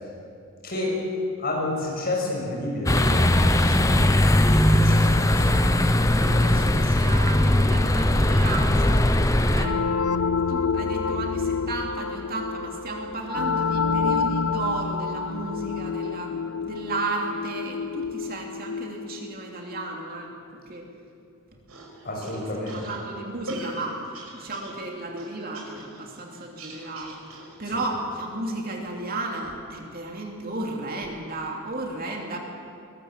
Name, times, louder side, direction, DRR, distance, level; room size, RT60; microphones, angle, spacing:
voice 1, 0.6-1.0 1.4-3.9 4.7-5.3 6.2-6.7 22.0-22.8, left 2 dB, 45° left, -2 dB, 6.6 m, -30 dB
sound 1, 2.9-9.7, left 1 dB, 15° left, 0.8 m, -19 dB
voice 2, 6.2-9.0 9.5-10.2 10.5-20.3 20.7-20.8 22.2-22.5 22.7-24.0 24.3-27.2 27.6-32.4, right 2 dB, 40° right, 0 dB, 2.9 m, -33 dB
sound 2, 9.6-20.0, left 5 dB, 80° left, 0.6 m, -28 dB
sound 3, 21.7-27.7, right 1 dB, 85° right, 5.2 m, -40 dB
22.0 x 20.0 x 7.6 m, 2.5 s
head